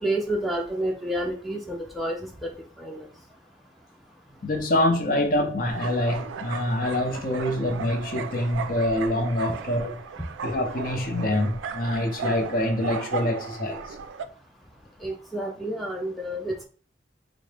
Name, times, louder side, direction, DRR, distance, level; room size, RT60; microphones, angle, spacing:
voice 1, 0.0-2.2 2.4-2.5 2.8-3.1 15.0-16.7, right 1 dB, ahead, 0.4 m, -29 dB
voice 2, 4.4-10.0 10.4-14.0, left 1 dB, 50° left, 0.6 m, -25 dB
sound 1, 5.6-14.3, right 5 dB, 85° right, 0.3 m, -36 dB
3.7 x 2.0 x 3.2 m
head